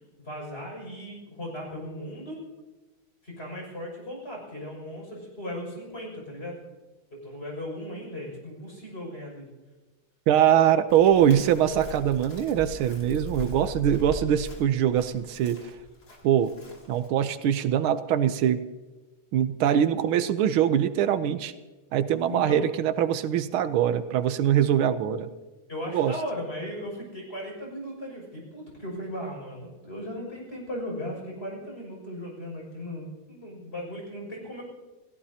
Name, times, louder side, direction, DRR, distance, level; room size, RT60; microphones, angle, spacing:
voice 1, 0.2-2.4 3.2-6.6 7.1-9.5 13.4-13.5 22.3-22.7 24.4-24.6 25.7-34.6, equal, 30° left, -2 dB, 6.6 m, -37 dB
voice 2, 10.3-15.7 16.2-16.5 16.9-18.6 19.3-21.5 21.9-25.3 25.9-26.1, right 10 dB, 85° right, 11 dB, 1.7 m, -23 dB
Chirp tweet, 10.9-17.1, left 2 dB, 50° left, 3.4 m, -40 dB
29.0 x 17.0 x 2.9 m, 1.2 s
omnidirectional pair, 2.2 m